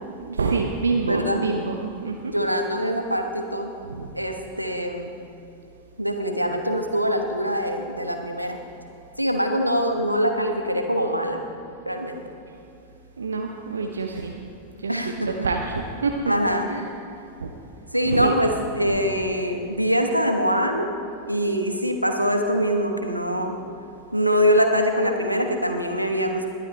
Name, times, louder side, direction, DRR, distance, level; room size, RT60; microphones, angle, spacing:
voice 1, 0.1-2.3 3.9-4.1 13.2-14.4 14.8-16.2 16.7-16.8 17.4-17.5 18.1-18.3 18.8-19.0, right 4 dB, 70° right, 2 dB, 0.8 m, -27 dB
voice 2, 1.0-1.5 2.2-3.7 4.1-5.1 6.0-8.6 9.2-11.4 11.8-12.2 14.9-15.5 16.3-16.7 17.9-20.9 21.3-23.6 24.1-26.5, equal, 90° right, 4 dB, 1.2 m, -23 dB
21.5 x 11.5 x 3.3 m, 2.6 s
figure-of-eight pair, 90°, 0 cm